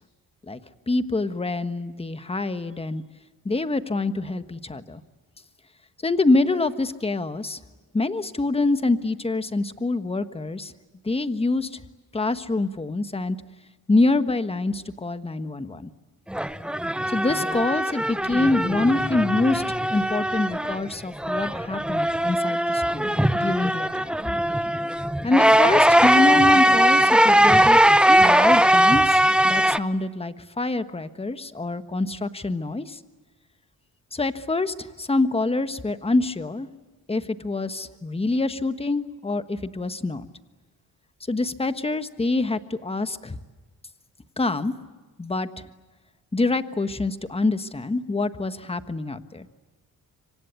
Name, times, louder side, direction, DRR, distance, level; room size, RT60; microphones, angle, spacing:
voice 1, 0.9-3.0 3.4-5.0 6.0-7.6 7.9-10.7 11.0-11.8 12.1-13.4 13.9-15.9 17.1-19.6 19.9-24.1 25.2-27.8 28.2-33.0 34.1-36.7 37.1-40.3 41.3-43.4 44.4-44.7 45.2-45.5 46.3-49.5, left 2 dB, 15° left, 10 dB, 1.3 m, -25 dB
sound 1, 16.3-20.9 21.2-29.8, right 1 dB, 5° right, 0.8 m, -20 dB
26.5 x 25.0 x 8.4 m, 1.3 s
cardioid pair, 105°, 36 cm